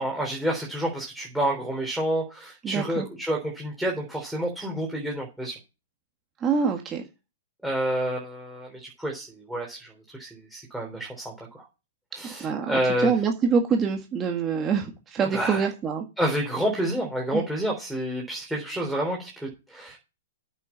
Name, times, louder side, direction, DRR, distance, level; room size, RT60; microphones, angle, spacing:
voice 1, 0.0-5.6 7.6-11.6 12.1-13.1 15.2-15.7 16.2-20.0, right 1 dB, ahead, -2 dB, 3.7 m, -29 dB
voice 2, 2.6-3.1 6.4-7.0 12.2-16.0 17.3-17.4, right 6 dB, 20° right, 3 dB, 1.7 m, -25 dB
8.3 x 6.7 x 7.4 m, 0.29 s
hypercardioid pair, 120°, 0 cm